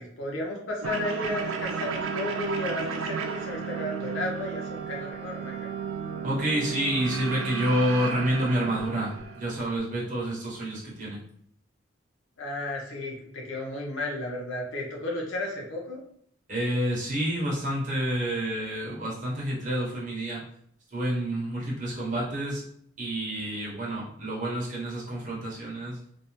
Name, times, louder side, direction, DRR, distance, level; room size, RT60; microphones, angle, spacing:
voice 1, 0.0-5.7 12.4-16.0, left 1 dB, 80° left, -2 dB, 0.8 m, -33 dB
sound 1, 0.8-9.8, right 6 dB, 85° right, 0.3 m, -33 dB
voice 2, 6.2-11.2 16.5-20.4 20.9-22.7 23.0-26.0, right 1 dB, 40° right, -5 dB, 0.9 m, -28 dB
2.5 x 2.1 x 2.9 m, 0.65 s
head